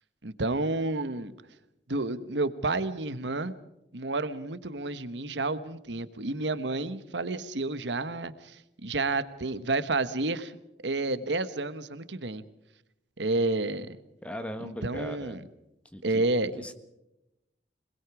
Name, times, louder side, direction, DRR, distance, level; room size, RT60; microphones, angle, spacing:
voice 1, 0.2-1.3 1.9-3.5 3.9-10.5 10.8-12.4 13.2-14.0 14.6-15.4 16.0-16.6, right 2 dB, 85° right, 12 dB, 1.3 m, -30 dB
voice 2, 14.2-15.4 15.9-16.2 16.6-16.7, equal, 5° left, 8 dB, 1.6 m, -38 dB
27.0 x 20.5 x 4.8 m, 0.89 s
head